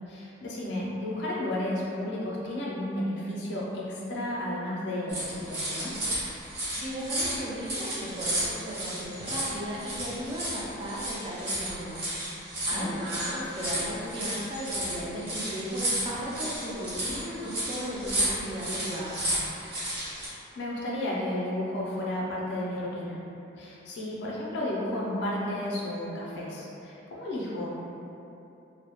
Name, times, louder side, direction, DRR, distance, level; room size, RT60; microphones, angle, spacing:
voice 1, 0.1-6.0 12.7-13.0 20.6-23.2 23.6-27.7, left 1 dB, 60° left, -5 dB, 0.4 m, -32 dB
sound 1, 5.1-20.3, right 1 dB, 55° right, 0.8 m, -33 dB
voice 2, 6.5-12.1 12.6-19.2, equal, 25° right, -6 dB, 0.3 m, -36 dB
2.2 x 2.0 x 2.8 m, 2.9 s
head